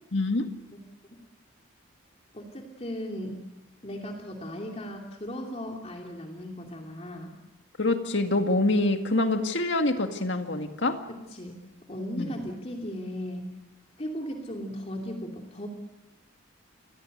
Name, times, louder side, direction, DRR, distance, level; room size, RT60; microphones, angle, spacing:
voice 1, 0.1-0.5 7.8-11.0 12.2-12.3, left 2 dB, 65° left, 6 dB, 2.0 m, -25 dB
voice 2, 2.3-3.4 3.8-7.3 11.1-11.6 11.9-13.5 14.0-15.7, equal, 30° left, 1 dB, 2.9 m, -37 dB
28.5 x 21.5 x 6.7 m, 1.0 s
head